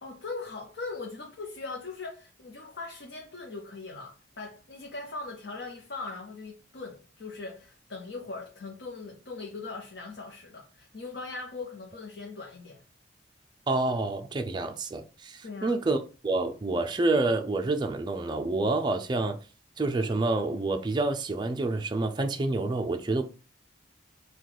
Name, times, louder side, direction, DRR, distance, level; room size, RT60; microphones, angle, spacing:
voice 1, 0.0-12.8 15.4-15.8, left 3 dB, 55° left, 0.7 m, -40 dB
voice 2, 13.7-19.4 19.8-23.2, right 2 dB, 20° right, 0.4 m, -28 dB
4.6 x 2.3 x 3.8 m
head